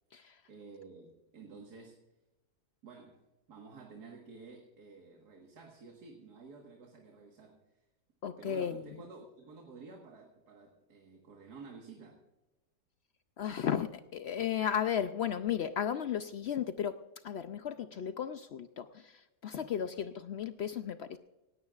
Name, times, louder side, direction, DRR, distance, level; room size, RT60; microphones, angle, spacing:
voice 1, 0.1-2.0 2.8-7.9 8.3-12.2, right 4 dB, 75° right, 2 dB, 2.1 m, -52 dB
voice 2, 8.2-8.8 13.4-21.2, left 9 dB, 75° left, 10 dB, 0.6 m, -35 dB
18.0 x 16.5 x 2.4 m, 1.0 s
omnidirectional pair, 1.7 m